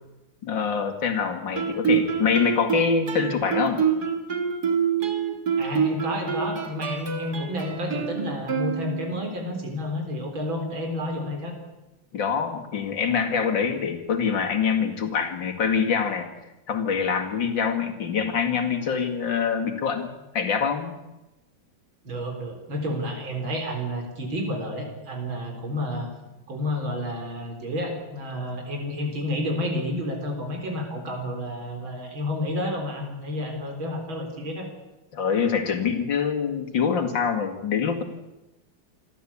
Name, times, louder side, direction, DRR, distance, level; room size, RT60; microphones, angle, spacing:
voice 1, 0.4-3.8 12.1-16.3 16.7-21.0 35.1-38.0, left 6 dB, 65° left, 5 dB, 2.9 m, -25 dB
Guitar, 1.5-9.3, right 7 dB, 50° right, 2.4 m, -26 dB
voice 2, 5.6-11.5 22.0-26.1 26.5-34.7, left 1 dB, 70° right, 3 dB, 4.6 m, -30 dB
26.5 x 13.0 x 8.5 m, 1.0 s
omnidirectional pair, 2.2 m